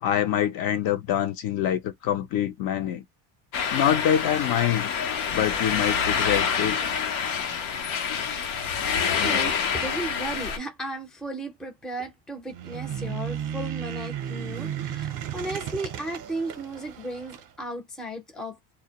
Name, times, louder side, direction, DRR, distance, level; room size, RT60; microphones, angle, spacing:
voice 1, 0.0-3.0 3.7-4.9 5.3-6.8, left 10 dB, 55° left, 0.5 m, -25 dB
sound 1, 3.5-10.6, left 6 dB, 90° left, 0.8 m, -27 dB
voice 2, 9.2-18.6, right 2 dB, ahead, 0.4 m, -35 dB
sound 2, 12.5-17.5, right 10 dB, 45° right, 0.6 m, -34 dB
2.1 x 2.1 x 2.7 m
cardioid pair, 125°, 45 cm